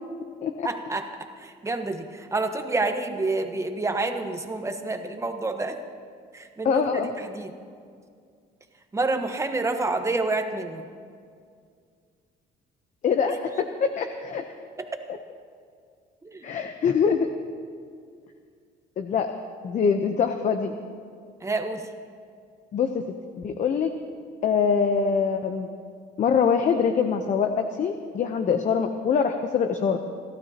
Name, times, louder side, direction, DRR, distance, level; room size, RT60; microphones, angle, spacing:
voice 1, 0.6-1.1 1.4-5.8 6.3-6.8 7.2-7.5 8.9-10.8 16.2-16.5 21.4-21.8, right 3 dB, 15° right, 6 dB, 1.2 m, -28 dB
voice 2, 6.6-7.1 13.0-14.4 16.4-17.3 19.0-19.3 19.6-20.8 22.7-23.1 23.4-23.9 24.4-25.7 26.2-30.0, left 6 dB, 45° left, 6 dB, 0.8 m, -24 dB
28.0 x 12.5 x 2.9 m, 2.2 s
cardioid pair, 110°, 17 cm